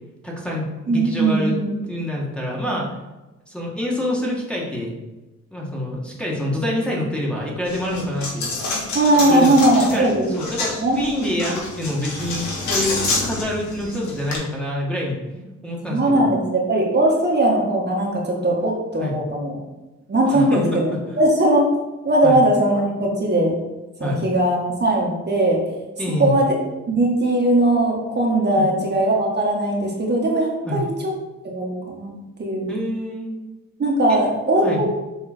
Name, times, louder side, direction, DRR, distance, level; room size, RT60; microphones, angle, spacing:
voice 1, 0.2-1.5 1.9-3.0 3.5-4.9 5.5-8.5 9.3-15.2 15.6-16.3 19.0-19.1 20.3-20.8 22.2-22.4 24.0-24.2 26.0-26.3 28.5-28.7 30.6-30.8 32.7-33.3 34.1-34.3 34.6-34.8, left 1 dB, 5° left, -3 dB, 1.7 m, -26 dB
voice 2, 0.9-1.8 8.9-10.3 10.8-11.0 15.8-19.6 20.1-20.9 21.2-21.6 22.0-23.5 24.0-25.6 26.2-26.5 26.9-30.9 31.4-32.7 33.8-34.9, right 1 dB, 35° right, -2 dB, 1.6 m, -19 dB
Coin (dropping), 7.7-14.4, left 3 dB, 70° left, 1.9 m, -28 dB
6.9 x 3.6 x 4.5 m, 1.1 s
cardioid pair, 90°, 30 cm